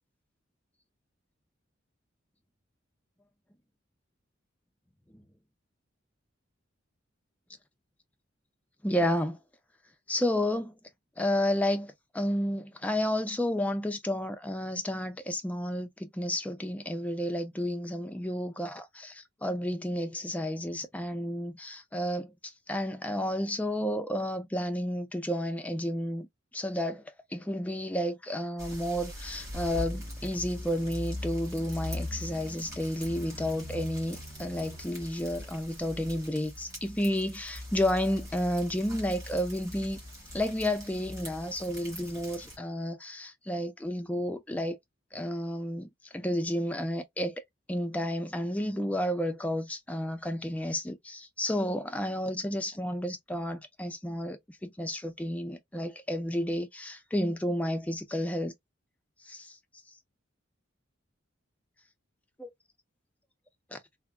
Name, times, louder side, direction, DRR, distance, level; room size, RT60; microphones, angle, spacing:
voice 1, 8.8-9.4 10.1-10.7 11.2-26.3 26.5-40.0 40.3-44.8 45.1-47.4 47.7-58.5 59.2-59.6 62.4-62.5 63.7-63.8, left 1 dB, 10° left, 0.4 m, -31 dB
sound 1, 28.6-42.6, left 1 dB, 15° right, 1.8 m, -41 dB
3.3 x 2.0 x 2.2 m
head